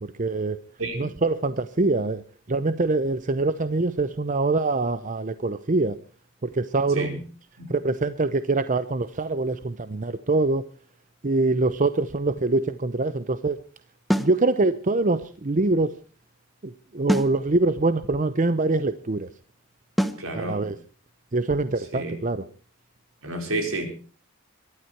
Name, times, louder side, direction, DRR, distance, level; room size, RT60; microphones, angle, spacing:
voice 1, 0.0-0.6 0.9-2.2 2.5-6.0 6.4-7.2 7.7-10.6 11.2-13.6 14.2-15.9 16.6-19.3 20.3-20.8 21.3-22.5, right 3 dB, 35° right, 13 dB, 0.7 m, -24 dB
sound 1, 14.1-14.4 17.1-17.4 20.0-20.3, equal, ahead, 0.9 m, -24 dB
voice 2, 20.2-20.6 21.9-22.1 23.2-23.8, right 2 dB, 75° right, 4 dB, 4.8 m, -30 dB
23.0 x 12.0 x 4.6 m, 0.38 s
head